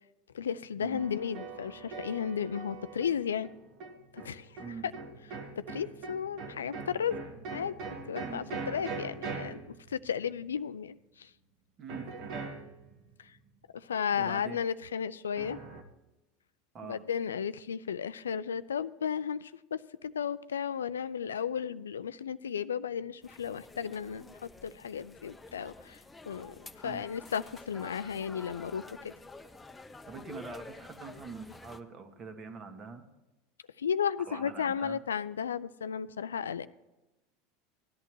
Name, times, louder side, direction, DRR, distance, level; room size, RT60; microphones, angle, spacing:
voice 1, 0.3-3.5 4.1-4.5 5.7-7.2 7.5-7.7 8.1-9.6 9.9-11.3 13.9-15.6 16.9-26.0 26.3-26.5 26.8-29.1 33.8-36.7, left 7 dB, 80° left, 15 dB, 0.4 m, -34 dB
sound 1, 0.9-10.5 11.9-13.1 15.4-15.8, right 4 dB, 55° right, 1.4 m, -42 dB
voice 2, 11.8-12.1 14.1-14.6 16.7-17.0 26.8-27.0 30.0-33.1 34.3-35.0, right 5 dB, 35° right, 7 dB, 1.6 m, -44 dB
sound 2, 23.2-31.8, left 3 dB, 15° left, 0.8 m, -49 dB
16.5 x 11.0 x 3.1 m, 1.0 s
figure-of-eight pair, 80°, 0 cm